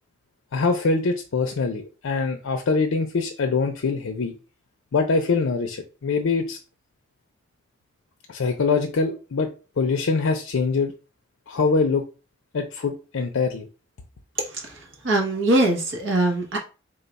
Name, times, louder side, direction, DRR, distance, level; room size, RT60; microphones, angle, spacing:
voice 1, 0.5-4.3 4.9-6.6 8.3-9.5 9.8-10.9 11.5-12.0 12.5-13.7, left 4 dB, 85° left, 5 dB, 0.5 m, -23 dB
voice 2, 14.4-16.6, right 2 dB, 70° right, 1 dB, 1.1 m, -23 dB
3.6 x 2.3 x 4.0 m, 0.33 s
head